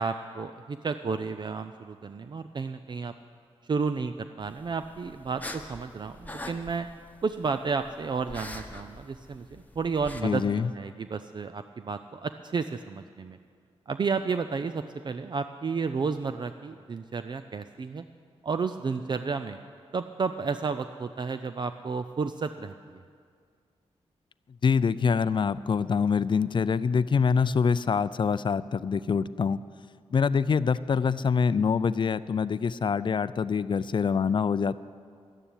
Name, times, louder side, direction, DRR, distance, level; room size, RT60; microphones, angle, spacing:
voice 1, 0.0-3.1 3.6-6.9 7.2-13.4 13.9-18.0 18.4-19.6 19.9-23.0, right 5 dB, 45° right, 10 dB, 0.5 m, -32 dB
sound 1, 4.4-10.2, left 2 dB, 15° left, 1.2 m, -44 dB
voice 2, 10.2-10.7 24.6-29.6 30.1-34.8, left 6 dB, 45° left, 16 dB, 0.4 m, -25 dB
12.5 x 10.0 x 9.2 m, 2.1 s
cardioid pair, 75°, 11 cm